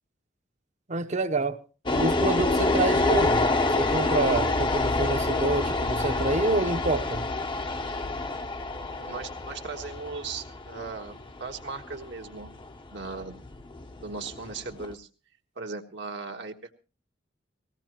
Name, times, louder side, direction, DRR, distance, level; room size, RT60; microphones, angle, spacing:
voice 1, 0.9-1.6 2.0-3.5 3.8-7.3, right 2 dB, 40° right, 0.9 m, -27 dB
sound 1, 1.9-14.9, left 2 dB, 25° left, 0.7 m, -27 dB
voice 2, 9.0-12.5 12.9-13.4 14.0-15.1 15.6-16.5, right 4 dB, 70° right, 1.4 m, -37 dB
19.0 x 16.5 x 3.0 m
head